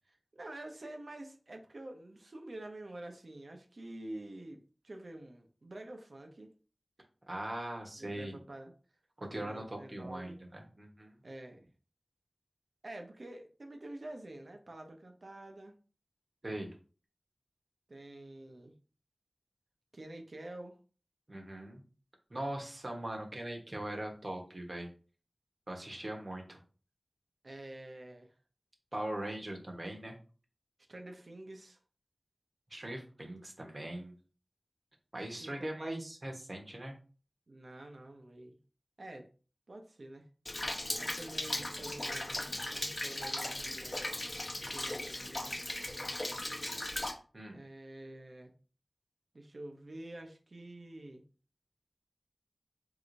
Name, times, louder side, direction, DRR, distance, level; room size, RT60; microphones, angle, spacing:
voice 1, 0.3-4.6 4.8-6.5 8.0-8.7 9.2-10.4 11.2-11.7 12.8-15.7 17.9-18.7 19.9-20.8 27.4-28.3 30.9-31.8 35.3-36.0 37.5-38.6 39.0-39.3 39.7-40.3 41.0-44.2 44.7-45.6 47.5-48.5 49.3-51.2, right 1 dB, 75° right, 4 dB, 0.9 m, -48 dB
voice 2, 7.3-8.4 9.2-11.2 16.4-16.7 21.3-21.8 22.3-24.9 25.7-26.6 28.9-30.1 32.7-34.1 35.1-36.9 47.3-47.6, right 1 dB, 50° right, 2 dB, 1.2 m, -40 dB
Rain, 40.5-47.1, left 1 dB, 40° left, 0.8 m, -37 dB
4.9 x 3.7 x 2.6 m, 0.38 s
wide cardioid pair, 65°, 0 cm